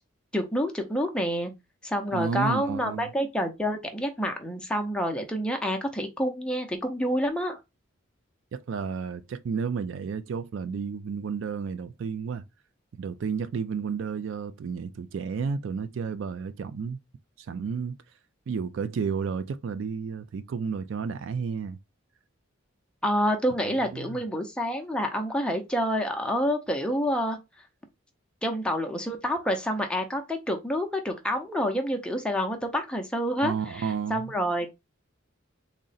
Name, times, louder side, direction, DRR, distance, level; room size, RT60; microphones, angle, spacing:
voice 1, 0.3-1.5 1.8-7.6 23.0-27.4 28.4-34.7, equal, 5° left, 0.5 m, -28 dB
voice 2, 2.1-3.1 8.5-12.4 13.0-17.0 17.4-18.0 18.5-21.8 23.9-24.2 33.4-34.3, right 6 dB, 65° right, 0.3 m, -32 dB
3.7 x 2.1 x 4.0 m
head